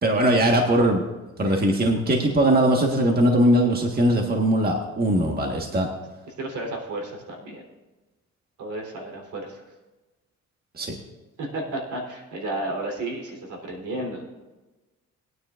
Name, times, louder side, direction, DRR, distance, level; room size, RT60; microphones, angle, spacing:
voice 1, 0.0-1.0 1.4-5.9 10.8-10.9, right 1 dB, 30° right, 1 dB, 1.5 m, -20 dB
voice 2, 6.3-7.6 8.6-9.7 11.4-14.2, right 2 dB, 75° right, 1 dB, 3.5 m, -33 dB
21.0 x 9.6 x 2.5 m, 1.1 s
cardioid pair, 90°, 30 cm